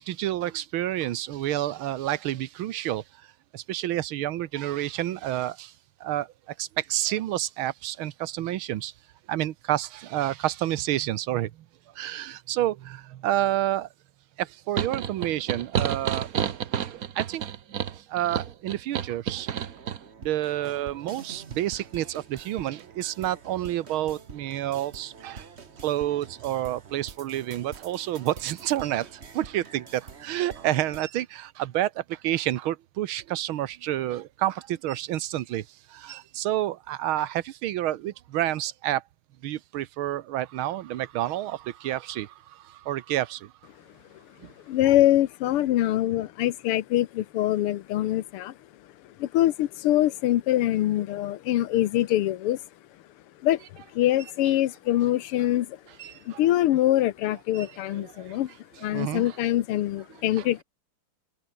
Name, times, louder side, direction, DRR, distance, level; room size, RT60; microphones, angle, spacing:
voice 1, 0.0-3.0 3.5-5.7 6.0-8.9 9.3-11.6 11.9-13.9 14.4-16.3 16.9-17.4 17.9-19.5 20.2-25.5 25.8-39.0 39.4-43.5 44.4-44.5 56.0-56.4 57.5-58.4 58.9-59.4 60.3-60.5, right 13 dB, 70° right, 1.7 m, -29 dB
sound 1, 14.8-20.0, right 9 dB, 50° right, 1.3 m, -30 dB
sound 2, 19.4-31.0, right 5 dB, 35° right, 1.6 m, -46 dB
voice 2, 44.7-48.5 49.2-52.6 53.4-55.8 56.3-58.5 58.8-60.6, left 13 dB, 85° left, 1.8 m, -24 dB
open air
omnidirectional pair, 2.4 m